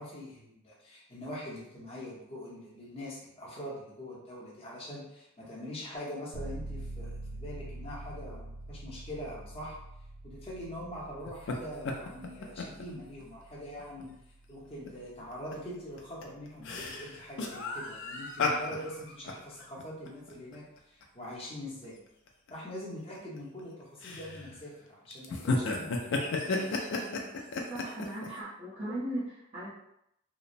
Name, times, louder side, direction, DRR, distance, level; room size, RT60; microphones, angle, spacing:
voice 1, 0.0-9.8 10.2-14.1 14.5-21.9 22.5-26.8, left 1 dB, 30° left, -6 dB, 0.8 m, -43 dB
sound 1, 6.3-16.9, right 1 dB, 75° right, 0.4 m, -46 dB
sound 2, 11.3-11.5 11.8-12.8 13.2-13.3 13.8-14.0 14.9-15.0 15.3-15.5 16.0-21.0 21.4-21.5 22.3-22.5 23.2-23.6 24.0-24.6 25.1-28.3, left 3 dB, 60° left, 0.4 m, -34 dB
voice 2, 27.7-29.7, right 1 dB, 30° right, -11 dB, 0.6 m, -37 dB
2.9 x 2.0 x 2.5 m, 0.79 s
head